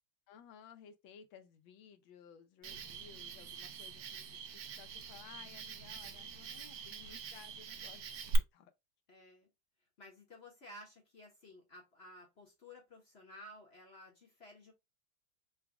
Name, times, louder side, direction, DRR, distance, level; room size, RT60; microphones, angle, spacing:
voice 1, 0.3-8.1 8.5-8.7, left 8 dB, 75° left, 1.3 m, -57 dB
Cricket, 2.6-8.4, right 6 dB, 70° right, 1.0 m, -44 dB
voice 2, 9.1-9.5 10.0-14.7, left 1 dB, 40° left, 1.1 m, -55 dB
4.0 x 2.4 x 3.4 m
omnidirectional pair, 2.2 m